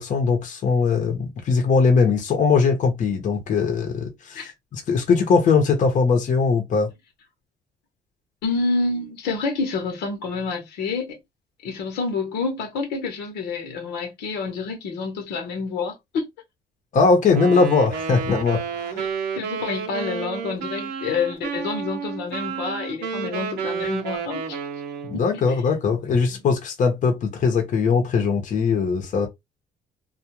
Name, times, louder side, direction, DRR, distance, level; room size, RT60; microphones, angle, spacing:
voice 1, 0.0-6.9 16.9-19.0 25.1-29.3, left 5 dB, 50° left, 0.9 m, -20 dB
voice 2, 8.4-11.2 11.6-16.3 18.9-19.1 19.4-24.6 25.1-25.6 26.0-26.1, left 4 dB, 85° left, 1.0 m, -28 dB
Wind instrument woodwind instrument, 17.3-25.3, right 6 dB, 75° right, 0.7 m, -31 dB
2.4 x 2.3 x 2.9 m
cardioid pair, 110°, 17 cm